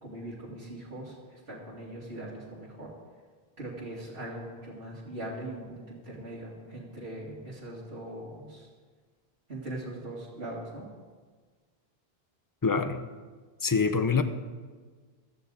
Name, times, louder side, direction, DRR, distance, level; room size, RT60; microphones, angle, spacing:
voice 1, 0.0-2.9 3.6-8.7 9.5-10.9, right 1 dB, 65° right, -6 dB, 2.5 m, -41 dB
voice 2, 12.6-13.0 13.6-14.2, left 5 dB, 25° left, 9 dB, 0.6 m, -25 dB
15.5 x 13.5 x 4.0 m, 1.5 s
omnidirectional pair, 1.0 m